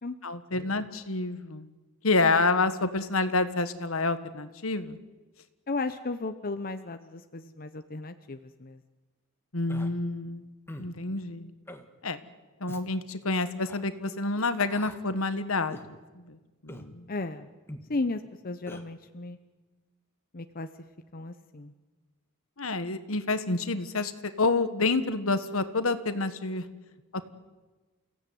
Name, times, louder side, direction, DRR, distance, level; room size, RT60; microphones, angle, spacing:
voice 1, 0.2-1.7 2.0-5.0 9.5-10.5 10.8-11.5 12.0-12.2 12.6-15.8 16.1-16.4 16.6-17.1 22.6-24.1 24.4-26.7 27.1-27.2, left 3 dB, 70° left, 11 dB, 1.5 m, -28 dB
voice 2, 5.7-8.8 17.1-17.5 17.9-19.4 20.3-20.7 21.1-21.7, left 3 dB, 45° left, 8 dB, 0.9 m, -35 dB
Human voice, 9.7-9.9 10.7-10.9 11.7-11.9 12.7-12.8 13.6-13.8 14.7-15.0 15.7-15.9 16.7-16.9 17.7-17.9 18.7-18.8, left 1 dB, 10° left, 1.6 m, -43 dB
29.0 x 16.5 x 9.4 m, 1.2 s
head